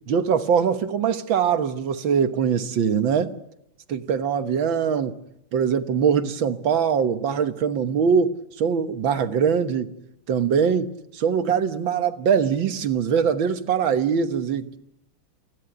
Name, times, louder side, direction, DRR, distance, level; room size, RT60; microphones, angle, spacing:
voice 1, 0.1-3.3 3.9-5.2 5.5-9.9 10.3-14.8, right 7 dB, 70° right, 2.0 m, -22 dB
29.5 x 16.5 x 8.0 m
omnidirectional pair, 2.2 m